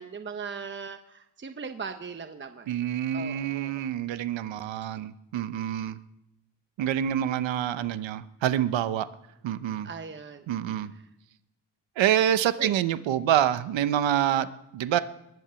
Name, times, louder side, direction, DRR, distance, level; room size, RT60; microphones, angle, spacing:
voice 1, 0.0-2.7 3.1-3.8 9.8-10.4 12.6-12.7, right 5 dB, 25° right, 7 dB, 1.1 m, -39 dB
voice 2, 2.7-6.0 6.8-9.1 9.4-9.9 10.5-10.9 12.0-14.5 14.7-15.0, right 10 dB, 80° right, 12 dB, 0.9 m, -26 dB
21.5 x 7.6 x 7.0 m, 0.88 s
cardioid pair, 90°, 45 cm